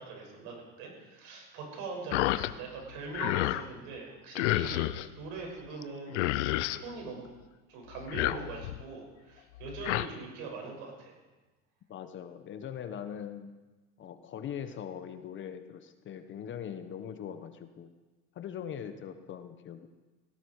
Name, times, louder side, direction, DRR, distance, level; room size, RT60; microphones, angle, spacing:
voice 1, 0.0-4.8 5.2-7.3 7.7-11.1, right 3 dB, 65° right, 1 dB, 6.8 m, -42 dB
sound 1, 2.1-2.5 2.9-3.6 4.3-5.1 5.8-5.9 6.1-6.8 7.9-8.8 9.6-10.1, left 16 dB, 85° left, 0.8 m, -30 dB
voice 2, 11.9-13.5 14.0-17.9 18.3-19.9, left 8 dB, 35° left, 9 dB, 1.1 m, -41 dB
17.0 x 17.0 x 4.8 m, 1.2 s
supercardioid pair, 125°, 34 cm